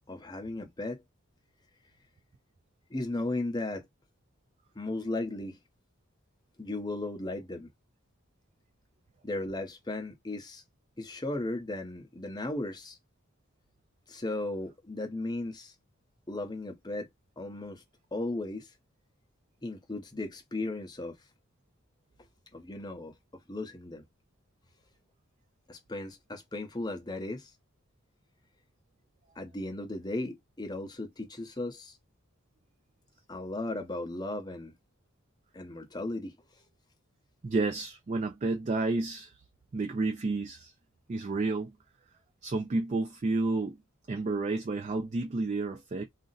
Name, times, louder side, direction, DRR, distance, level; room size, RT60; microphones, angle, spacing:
voice 1, 0.1-1.0 2.9-3.9 4.7-5.6 6.6-7.7 9.2-10.6 11.0-13.0 14.1-15.7 16.3-17.1 17.4-17.8 18.1-18.7 19.6-21.2 22.5-24.0 25.7-27.5 29.4-32.0 33.3-34.7 35.5-36.7, left 2 dB, 20° left, 0.7 m, -36 dB
voice 2, 37.4-39.3 39.7-40.7 41.1-41.7 42.4-43.8 44.1-46.0, right 3 dB, 35° right, 0.3 m, -30 dB
2.4 x 2.0 x 3.9 m
head